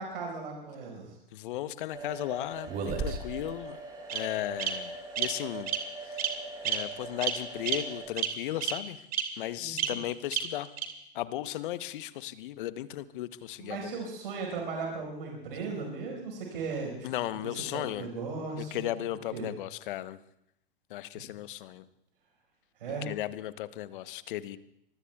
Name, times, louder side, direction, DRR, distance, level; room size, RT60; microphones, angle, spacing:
voice 1, 0.0-1.2 9.6-10.0 13.6-17.1 17.4-19.5 21.1-21.2 22.8-23.1, right 4 dB, 70° right, 1 dB, 5.2 m, -37 dB
voice 2, 1.3-3.8 4.1-5.7 6.0-6.2 6.6-9.0 9.4-10.7 11.1-14.0 17.0-18.1 18.6-20.2 20.9-21.9 23.1-24.6, left 13 dB, 60° left, 14 dB, 1.0 m, -36 dB
sound 1, 1.9-8.1, right 3 dB, 15° right, 6.8 m, -42 dB
Bird vocalization bird call bird song, 2.7-3.4 4.1-4.2 4.6-4.7 5.2-5.3 5.7-5.8 6.2-6.3 6.6-6.8 7.2-7.3 7.7-7.8 8.2-8.3 8.6-8.7 9.1-9.2 9.8-9.9 10.3-10.4 10.8-10.9, right 10 dB, 30° right, 2.7 m, -29 dB
25.5 x 23.5 x 2.4 m, 0.77 s
figure-of-eight pair, 95°, 29 cm